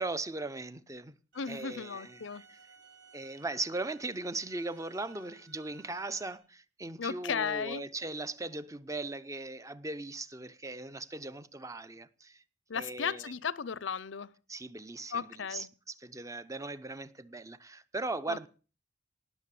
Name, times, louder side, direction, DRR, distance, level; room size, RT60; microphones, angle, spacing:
voice 1, 0.0-1.2 1.5-2.6 3.1-12.4 12.7-13.3 14.5-18.5, right 2 dB, 15° right, 0.7 m, -39 dB
voice 2, 1.3-2.4 7.0-7.8 12.7-14.3 15.1-15.7 18.3-18.4, left 6 dB, 70° left, 0.6 m, -35 dB
sound 1, 1.3-6.4, right 4 dB, 70° right, 4.9 m, -59 dB
18.5 x 6.7 x 8.4 m
head